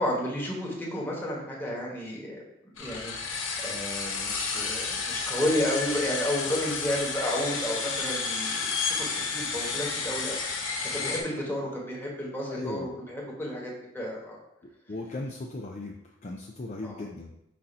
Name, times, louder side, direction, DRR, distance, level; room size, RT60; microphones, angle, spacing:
voice 1, 0.0-2.4 2.8-14.4 16.8-17.0, left 1 dB, 10° left, -3 dB, 1.4 m, -32 dB
sound 1, 2.8-11.2, left 4 dB, 75° left, 1.0 m, -31 dB
voice 2, 12.5-12.9 14.9-15.9 16.2-17.3, left 2 dB, 35° left, 1 dB, 0.5 m, -37 dB
6.3 x 2.8 x 5.4 m, 0.84 s
head